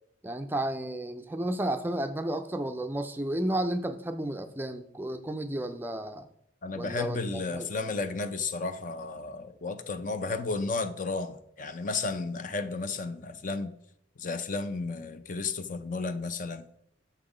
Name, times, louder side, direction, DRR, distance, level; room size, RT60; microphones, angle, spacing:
voice 1, 0.2-6.3 6.7-7.7, right 1 dB, 10° right, 0.4 m, -32 dB
voice 2, 6.6-13.7 14.2-16.7, left 3 dB, 45° left, 0.5 m, -33 dB
7.0 x 5.8 x 5.0 m
head